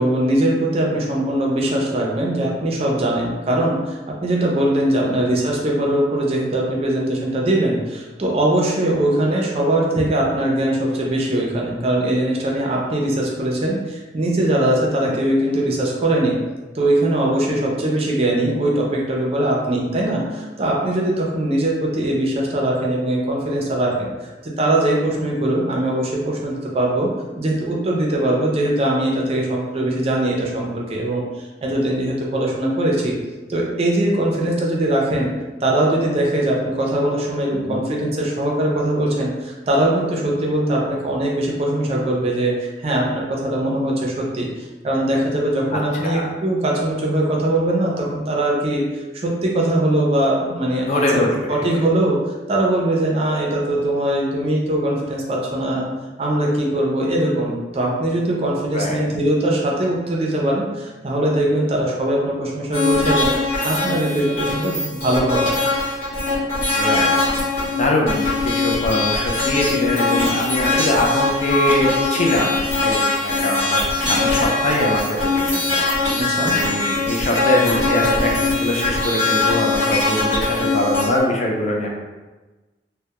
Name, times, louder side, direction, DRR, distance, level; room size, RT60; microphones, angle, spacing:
voice 1, 0.0-16.4 16.7-27.1 27.4-33.1 33.5-35.3 35.6-51.2 51.5-52.2 52.5-55.9 56.2-65.4 76.2-76.6, right 1 dB, 35° right, -2 dB, 0.4 m, -21 dB
voice 2, 45.7-46.3 50.9-51.5 58.7-59.0 66.7-67.1 67.8-68.3 68.6-75.9 76.4-78.3 78.6-81.9, left 1 dB, 40° left, 0 dB, 0.3 m, -22 dB
sound 1, 62.7-81.2, left 3 dB, 65° left, 0.9 m, -21 dB
2.2 x 2.0 x 2.8 m, 1.2 s
head